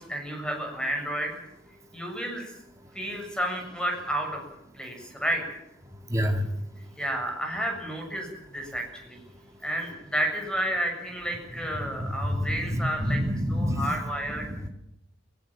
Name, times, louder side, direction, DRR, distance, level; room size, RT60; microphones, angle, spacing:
voice 1, 0.0-1.4 1.9-2.5 2.9-4.4 4.7-5.6 7.0-9.2 9.6-13.2 13.5-14.5, right 1 dB, 5° left, 2 dB, 7.4 m, -31 dB
voice 2, 6.1-6.4 11.8-11.9 12.2-13.9 14.4-14.7, equal, 15° right, 3 dB, 2.8 m, -27 dB
23.0 x 20.0 x 7.4 m, 0.82 s
head